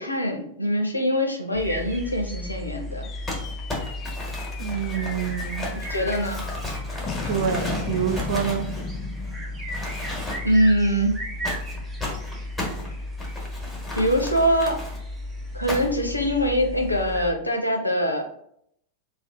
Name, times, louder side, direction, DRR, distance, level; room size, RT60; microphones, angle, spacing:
voice 1, 0.0-3.1 5.9-6.4 10.4-11.2 14.0-14.8 15.5-18.3, equal, 85° left, 0.5 m, -23 dB
sound 1, 1.5-17.3, left 1 dB, 20° right, 0.8 m, -34 dB
sound 2, 3.0-11.6, left 5 dB, 35° left, 0.4 m, -37 dB
Crumpling crinkling, 3.3-9.3 9.7-10.7 11.4-15.0 15.7-16.1, left 1 dB, 5° left, 1.1 m, -34 dB
voice 2, 4.6-5.7 6.0-6.1 7.3-8.8, right 9 dB, 55° right, 0.3 m, -27 dB
2.6 x 2.3 x 3.3 m
figure-of-eight pair, 90°, 0 cm